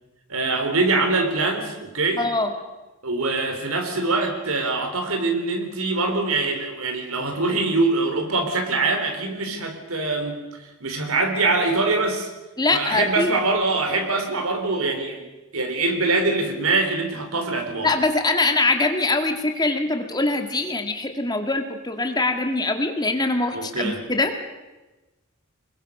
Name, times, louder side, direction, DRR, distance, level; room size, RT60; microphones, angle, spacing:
voice 1, 0.3-2.3 3.0-12.3 12.7-15.2 15.5-17.9 23.5-24.0, right 3 dB, 90° right, 6 dB, 3.9 m, -23 dB
voice 2, 2.2-2.5 12.6-13.3 17.8-24.3, left 2 dB, 20° left, 5 dB, 2.0 m, -23 dB
26.0 x 21.5 x 6.7 m, 1.1 s
head